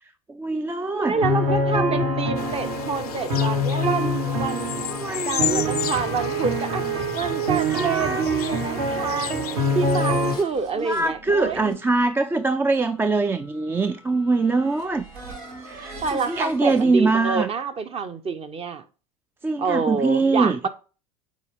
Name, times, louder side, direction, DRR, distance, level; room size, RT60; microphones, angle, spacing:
voice 1, 0.3-1.2 4.9-5.7 7.7-8.6 10.8-15.0 15.7-17.5 19.4-20.6, right 3 dB, 10° right, 0.4 m, -23 dB
voice 2, 0.9-4.8 5.3-9.4 9.7-11.6 16.0-18.8 19.6-20.7, right 5 dB, 30° right, 0.9 m, -27 dB
sound 1, 1.1-10.4, equal, 60° right, 2.0 m, -25 dB
sound 2, 2.4-10.4, left 12 dB, 80° left, 0.5 m, -33 dB
sound 3, 9.4-16.8, right 1 dB, 80° right, 2.2 m, -41 dB
8.2 x 4.2 x 3.5 m
hypercardioid pair, 80°, 19 cm